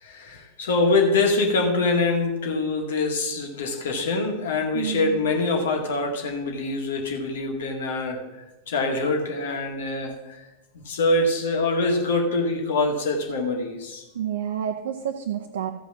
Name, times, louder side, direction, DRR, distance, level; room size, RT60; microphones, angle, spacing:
voice 1, 0.0-8.2 8.7-10.4 10.7-14.0, left 2 dB, 60° left, 2 dB, 2.0 m, -24 dB
voice 2, 4.7-5.2 14.1-15.7, right 9 dB, 60° right, 3 dB, 0.8 m, -29 dB
14.5 x 5.0 x 6.0 m, 1.0 s
figure-of-eight pair, 90°, 0 cm